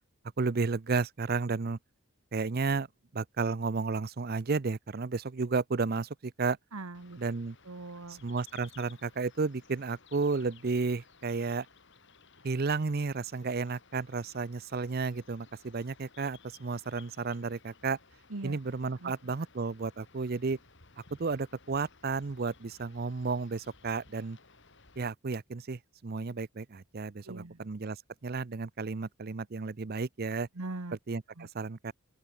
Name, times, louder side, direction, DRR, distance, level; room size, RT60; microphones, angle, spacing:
voice 1, 0.4-1.8 2.3-2.9 3.1-6.6 7.2-7.6 8.2-11.7 12.4-18.0 18.4-20.6 21.2-24.4 25.0-28.0 28.2-30.5 31.1-31.9, right 4 dB, 45° right, 0.6 m, -32 dB
voice 2, 6.7-7.2 7.6-8.2 18.3-18.6 19.0-19.1 27.2-27.6 30.5-31.0 31.4-31.5, right 2 dB, 85° right, 1.4 m, -41 dB
sound 1, 6.9-25.1, left 5 dB, 55° left, 3.8 m, -59 dB
open air
head